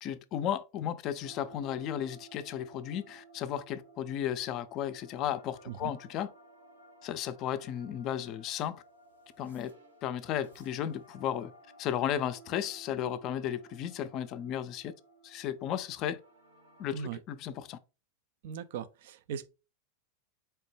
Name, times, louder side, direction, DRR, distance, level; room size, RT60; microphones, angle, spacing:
voice 1, 0.0-6.3 7.0-8.8 9.4-9.7 10.0-11.5 11.8-14.9 15.2-16.2 16.8-17.8, left 10 dB, 45° left, 0.4 m, -34 dB
sound 1, 1.2-17.0, right 3 dB, 85° right, 0.9 m, -57 dB
voice 2, 5.7-6.0 16.9-17.2 18.4-19.5, right 7 dB, 65° right, 0.3 m, -39 dB
4.3 x 2.1 x 3.2 m
hypercardioid pair, 95°, 0 cm